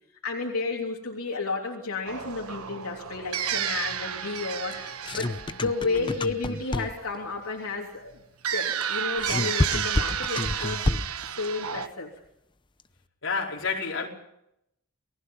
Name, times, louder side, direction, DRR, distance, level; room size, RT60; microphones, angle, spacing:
voice 1, 0.2-8.1 8.5-10.8 11.3-12.1, left 3 dB, 80° left, 3.3 m, -32 dB
sound 1, 2.1-6.9 8.4-11.9, right 8 dB, 85° right, 1.2 m, -32 dB
sound 2, 4.7-7.2 8.8-11.3, left 1 dB, 20° left, 0.8 m, -29 dB
voice 2, 13.2-14.1, left 5 dB, 60° left, 4.8 m, -30 dB
29.0 x 19.5 x 5.7 m
head